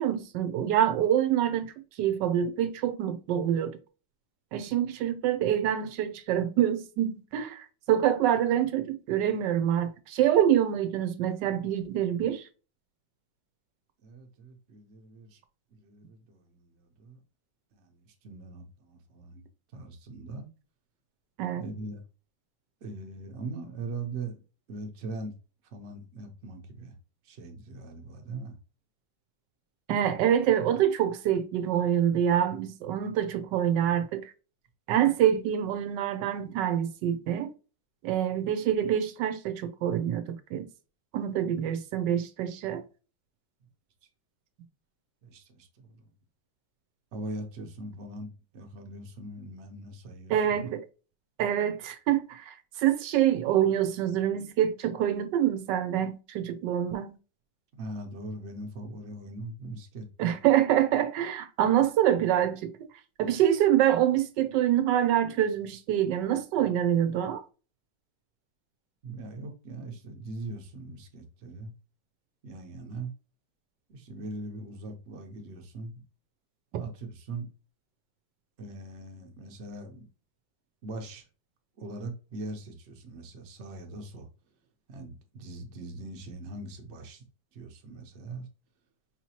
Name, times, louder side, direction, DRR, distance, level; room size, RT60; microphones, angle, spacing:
voice 1, 0.0-1.7 2.0-3.8 4.5-12.4 21.4-21.6 29.9-34.3 34.9-37.5 38.0-40.6 41.1-42.8 50.3-50.8 51.4-57.2 60.2-62.7 63.2-67.4, right 10 dB, 85° right, 1.2 m, -26 dB
voice 2, 14.0-15.4 15.7-17.2 17.7-19.4 19.7-20.5 21.5-22.0 22.8-24.4 24.7-25.3 25.7-26.9 27.2-28.6 45.2-46.1 47.1-50.6 57.7-60.4 69.0-71.7 72.4-73.1 73.9-75.9 76.7-77.5 78.6-80.1 80.8-81.3 81.8-84.3 84.9-87.2 87.5-88.5, right 2 dB, 50° right, 1.0 m, -41 dB
4.8 x 2.8 x 2.8 m
omnidirectional pair, 1.9 m